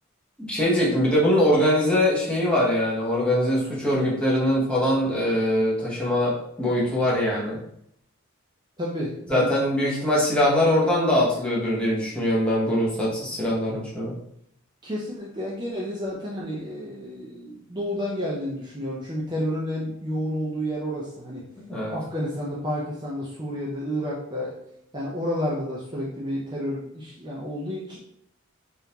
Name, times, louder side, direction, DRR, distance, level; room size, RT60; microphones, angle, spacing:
voice 1, 0.4-7.6 9.3-14.1 21.7-22.0, left 1 dB, 5° left, -6 dB, 0.8 m, -22 dB
voice 2, 8.8-9.5 14.8-21.5 21.9-24.5 24.9-28.0, equal, 20° right, -5 dB, 0.5 m, -30 dB
3.6 x 2.6 x 2.8 m, 0.74 s
head